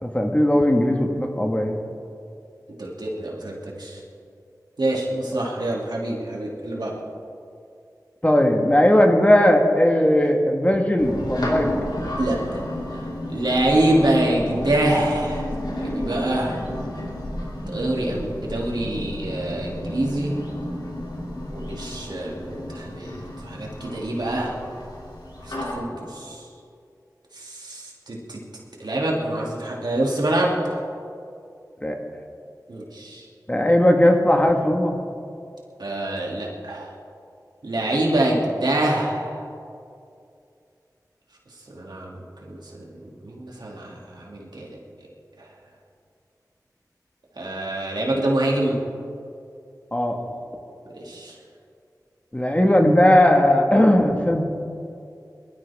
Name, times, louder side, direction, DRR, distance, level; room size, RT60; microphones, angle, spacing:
voice 1, 0.0-1.8 8.2-11.7 31.8-32.0 33.5-34.9 49.9-50.2 52.3-54.4, left 1 dB, 20° left, 2 dB, 1.7 m, -18 dB
voice 2, 2.8-4.0 4.8-6.9 12.2-12.6 13.3-15.5 15.8-16.6 17.7-20.3 21.5-23.2 23.4-24.6 25.6-26.4 27.4-28.4 28.8-30.8 32.7-33.2 35.8-36.9 37.6-39.4 41.7-42.8 43.2-44.8 47.4-48.8 50.9-51.3, right 1 dB, 85° right, -3 dB, 2.7 m, -25 dB
sound 1, 11.0-25.7, left 1 dB, 80° left, 2.9 m, -32 dB
22.0 x 13.0 x 3.6 m, 2.4 s
wide cardioid pair, 50°, 7 cm